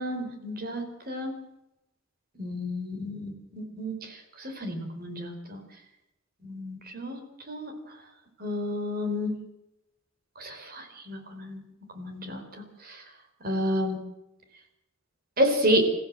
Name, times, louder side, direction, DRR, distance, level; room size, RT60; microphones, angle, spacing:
voice 1, 0.0-1.3 2.4-5.6 6.4-7.7 8.4-9.3 10.4-11.6 11.9-13.0 13.4-14.0 15.4-15.9, equal, 45° right, 5 dB, 4.8 m, -30 dB
29.5 x 15.5 x 7.7 m, 0.91 s
head